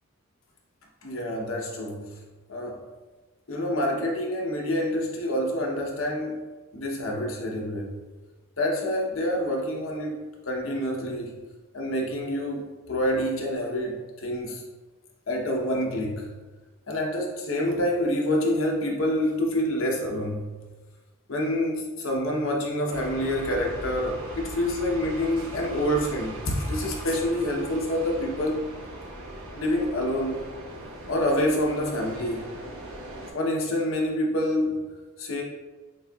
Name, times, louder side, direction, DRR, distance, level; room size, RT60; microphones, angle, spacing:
voice 1, 1.0-2.2 2.5-2.8 3.5-6.4 6.7-8.0 8.6-10.2 10.5-11.4 11.7-14.6 15.3-16.3 16.9-20.5 21.3-28.6 29.5-30.4 31.1-32.5 33.3-34.8 35.2-35.4, left 1 dB, 65° left, -1 dB, 0.8 m, -27 dB
sound 1, 22.9-33.3, right 1 dB, 80° right, 0.9 m, -40 dB
6.5 x 2.7 x 2.3 m, 1.3 s
head